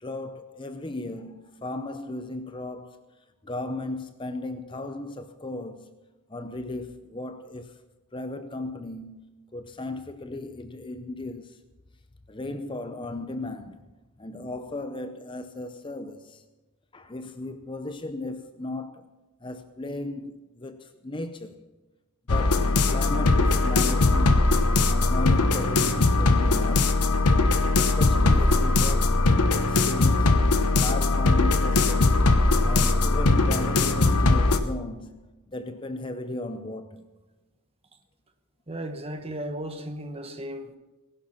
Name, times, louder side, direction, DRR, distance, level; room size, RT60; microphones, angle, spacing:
voice 1, 0.0-3.0 3.4-5.9 6.3-7.8 8.1-9.2 9.5-11.6 12.3-13.8 14.2-16.4 16.9-19.1 19.4-21.6 22.3-24.5 24.9-27.1 27.7-29.3 29.5-30.3 30.7-32.2 32.6-35.2 35.5-37.0, left 2 dB, 20° left, 0.6 m, -36 dB
sound 1, 22.3-34.6, left 2 dB, 90° left, 1.1 m, -20 dB
voice 2, 38.7-40.7, right 1 dB, 25° right, 1.2 m, -35 dB
19.0 x 11.5 x 5.7 m
head